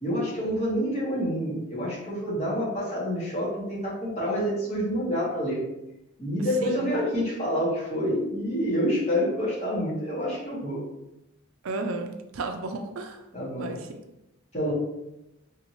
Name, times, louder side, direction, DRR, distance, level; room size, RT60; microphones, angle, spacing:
voice 1, 0.0-5.6 6.2-10.8 13.3-13.8 14.5-14.7, equal, 30° left, -7 dB, 1.3 m, -28 dB
voice 2, 11.6-13.2 13.6-14.0, right 3 dB, 75° right, 5 dB, 0.4 m, -33 dB
3.5 x 2.8 x 3.0 m, 0.90 s
head